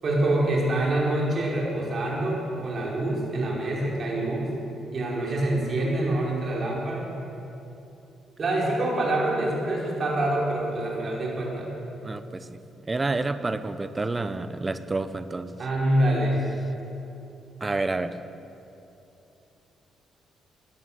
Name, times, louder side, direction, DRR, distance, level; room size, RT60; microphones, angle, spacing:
voice 1, 0.0-4.5 4.9-7.1 8.4-11.7 15.6-16.4, right 1 dB, 45° right, -4 dB, 5.0 m, -26 dB
voice 2, 12.0-12.6 12.9-15.6 17.6-18.2, right 3 dB, 25° right, 11 dB, 0.9 m, -29 dB
17.0 x 11.0 x 7.6 m, 2.9 s
cardioid pair, 90°, 0 cm